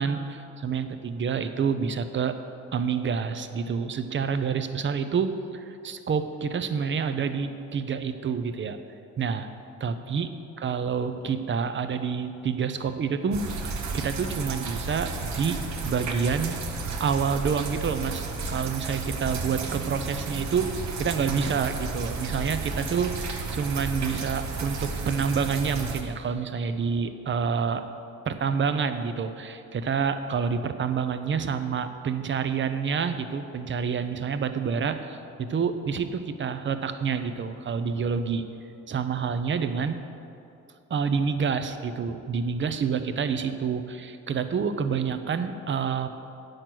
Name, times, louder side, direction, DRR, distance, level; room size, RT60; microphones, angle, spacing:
voice 1, 0.0-2.4 2.7-8.8 9.2-9.5 9.8-10.3 10.6-16.6 17.0-20.7 21.0-27.8 28.3-38.4 38.9-40.0 40.9-46.1, right 6 dB, 40° right, 9 dB, 0.7 m, -28 dB
sound 1, 13.3-26.0, right 3 dB, 65° right, 1.1 m, -33 dB
9.1 x 6.5 x 6.0 m, 2.6 s
cardioid pair, 90°, 30 cm